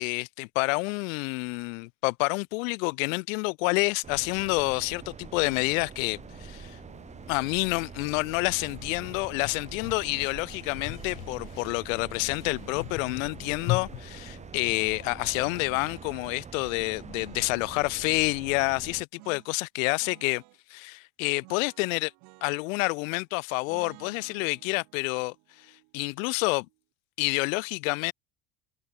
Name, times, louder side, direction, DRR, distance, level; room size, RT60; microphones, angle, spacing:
voice 1, 0.0-6.8 7.3-20.4 20.7-22.1 22.4-25.3 25.9-26.7 27.2-28.1, left 28 dB, 90° left, 1.9 m, -28 dB
sound 1, 4.0-19.0, right 6 dB, 15° right, 3.2 m, -45 dB
sound 2, 6.1-15.7, left 22 dB, 55° left, 6.1 m, -41 dB
sound 3, 8.6-9.2 10.0-11.5 12.5-13.9 14.7-16.2 17.0-18.4 19.2-19.5 19.8-20.6 21.4-23.2 23.7-26.8, right 31 dB, 65° right, 7.4 m, -54 dB
cardioid pair, 170°, 39 cm